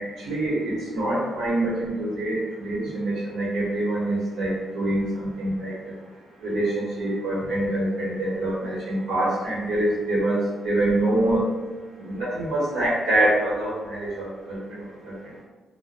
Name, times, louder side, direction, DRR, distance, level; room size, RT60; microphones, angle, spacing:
voice 1, 0.0-5.9 6.4-11.5 12.0-15.1, right 1 dB, 90° right, -6 dB, 1.1 m, -25 dB
2.1 x 2.0 x 3.1 m, 1.2 s
cardioid pair, 130°, 0 cm